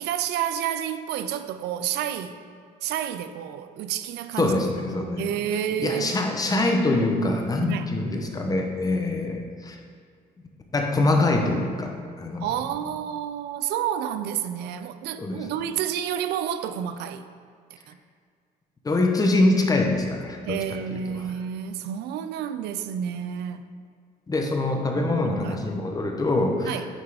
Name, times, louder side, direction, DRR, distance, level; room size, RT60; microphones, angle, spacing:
voice 1, 0.0-2.4 2.8-4.6 5.2-6.3 7.7-7.9 12.4-17.2 17.9-18.0 20.4-23.7 24.9-25.6 26.6-26.9, right 9 dB, 80° right, 0.4 m, -30 dB
voice 2, 4.4-5.3 5.8-9.8 10.7-12.5 15.2-15.5 18.8-21.2 24.3-26.8, left 2 dB, 20° left, 0.9 m, -24 dB
8.7 x 3.7 x 4.8 m
cardioid pair, 110°, 17 cm